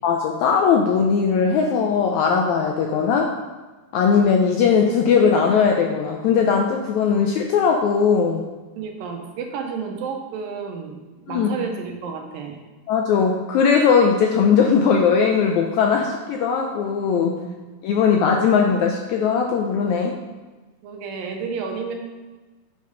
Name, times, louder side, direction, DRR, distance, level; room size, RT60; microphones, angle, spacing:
voice 1, 0.0-3.4 3.9-8.4 11.3-11.5 12.9-17.3 17.8-20.2, left 6 dB, 85° left, 2 dB, 1.7 m, -19 dB
voice 2, 8.8-11.0 11.3-12.6 17.0-17.5 20.8-21.9, right 5 dB, 90° right, 3 dB, 2.7 m, -31 dB
6.8 x 5.4 x 5.1 m, 1.2 s
omnidirectional pair, 3.9 m